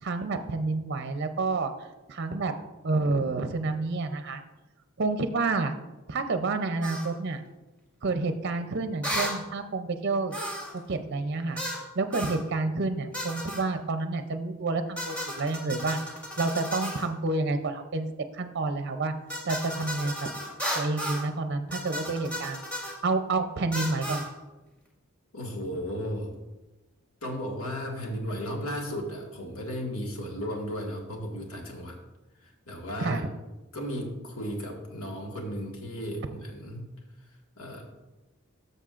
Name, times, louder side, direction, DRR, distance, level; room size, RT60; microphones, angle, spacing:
voice 1, 0.0-1.7 2.1-2.5 2.8-4.4 5.0-5.7 6.1-7.4 8.0-10.4 10.7-11.6 12.0-16.0 16.4-19.1 19.5-20.3 20.8-22.6 23.0-24.2 33.0-33.3, right 3 dB, 50° right, 8 dB, 0.6 m, -29 dB
sound 1, 6.8-7.1 9.0-9.4 10.3-10.8 11.6-11.8 12.1-12.4 13.1-13.6 15.0-17.1 19.3-21.3 21.7-23.0 23.7-24.3, equal, 5° left, 1.7 m, -34 dB
voice 2, 25.3-26.3 27.2-32.0 32.4-33.2 33.7-36.9 37.5-37.8, equal, 85° left, 1 dB, 1.7 m, -35 dB
13.0 x 6.6 x 2.5 m, 1.1 s
head